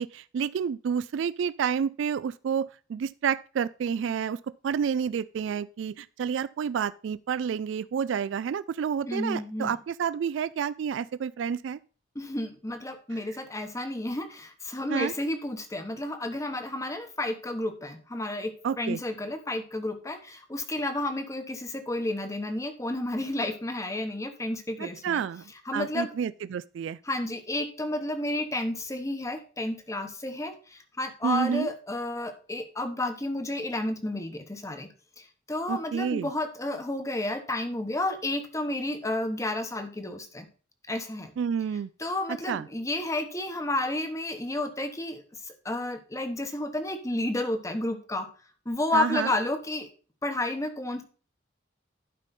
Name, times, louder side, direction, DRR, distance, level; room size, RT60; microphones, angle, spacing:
voice 1, 0.0-11.8 14.9-15.1 18.6-19.0 24.8-25.4 25.7-27.0 31.2-31.7 35.7-36.3 41.4-41.9 42.5-42.7 48.9-49.3, right 7 dB, 75° right, 0.3 m, -29 dB
voice 2, 9.0-9.7 12.1-25.2 25.6-26.1 27.0-34.9 35.2-40.5 40.9-41.3 42.0-48.3 48.6-49.9 50.2-51.0, left 1 dB, 15° left, 1.1 m, -31 dB
11.5 x 5.3 x 4.1 m
head